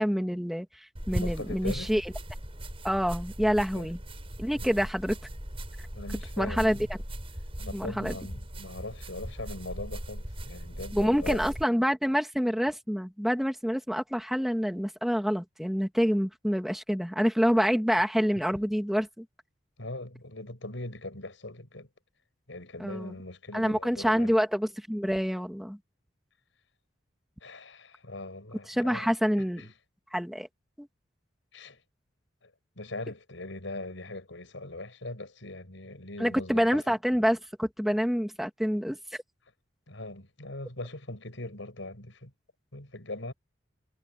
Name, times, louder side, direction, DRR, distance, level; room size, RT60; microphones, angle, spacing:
voice 1, 0.0-2.0 2.8-4.0 4.4-5.2 6.4-6.8 7.7-8.1 10.9-19.2 22.8-23.1 23.5-25.8 28.7-29.6 30.1-30.5 30.8-30.9 36.2-39.0, equal, ahead, 2.3 m, -27 dB
sound 1, 1.0-11.7, equal, 30° right, 6.2 m, -38 dB
voice 2, 1.1-1.9 3.7-3.9 4.6-4.8 5.9-6.9 7.6-11.5 19.8-21.9 22.5-24.3 27.4-29.1 29.6-29.7 31.5-31.8 32.4-37.0 39.9-42.3 42.7-43.3, left 2 dB, 85° left, 5.5 m, -40 dB
head